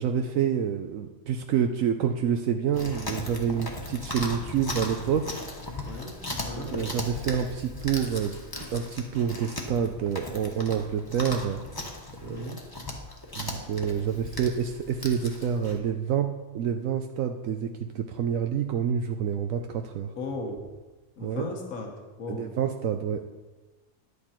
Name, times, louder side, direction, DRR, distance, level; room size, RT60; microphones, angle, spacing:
voice 1, 0.0-5.4 6.6-8.4 8.7-11.8 12.2-12.5 13.4-20.1 21.2-21.5 22.3-23.2, right 8 dB, 75° right, 6 dB, 1.0 m, -28 dB
Chewing mastication, 2.7-15.8, left 1 dB, 15° left, 1.2 m, -37 dB
voice 2, 5.9-6.8 12.2-12.6 20.2-20.6 21.2-21.9 22.2-22.5, left 2 dB, 85° left, 2 dB, 1.7 m, -36 dB
11.0 x 8.4 x 4.4 m, 1.2 s
omnidirectional pair, 1.4 m